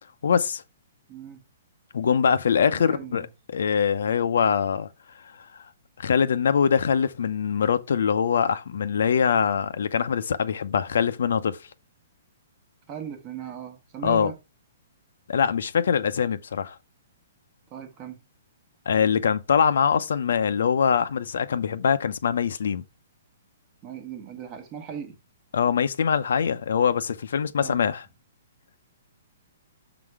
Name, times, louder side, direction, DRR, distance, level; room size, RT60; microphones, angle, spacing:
voice 1, 0.2-0.6 1.9-3.3 3.5-4.9 6.0-11.6 14.0-14.3 15.3-16.8 18.9-22.8 25.5-28.1, left 7 dB, 70° left, 0.7 m, -23 dB
voice 2, 1.1-1.4 2.6-3.3 12.9-14.4 17.7-18.2 23.8-25.2 27.5-27.8, right 8 dB, 20° right, 1.1 m, -38 dB
6.7 x 4.0 x 4.8 m
hypercardioid pair, 170°, 0 cm